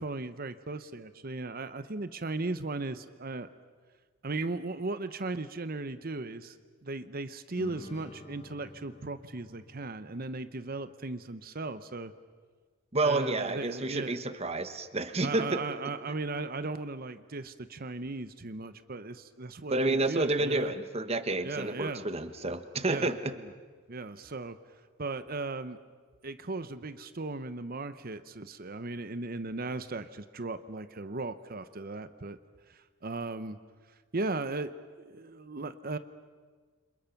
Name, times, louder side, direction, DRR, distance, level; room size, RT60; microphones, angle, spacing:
voice 1, 0.0-3.5 4.2-6.6 6.8-12.1 13.0-14.2 15.2-20.7 21.4-22.1 22.9-23.1 23.9-24.6 25.0-25.8 26.2-32.4 32.7-33.6 34.1-34.7 35.0-36.0, right 3 dB, 45° right, 12 dB, 0.9 m, -37 dB
sound 1, 7.6-11.2, left 1 dB, 30° left, 1.2 m, -50 dB
voice 2, 12.9-15.6 19.7-23.3, right 2 dB, 30° right, 10 dB, 1.2 m, -30 dB
29.5 x 26.5 x 6.0 m, 1.5 s
head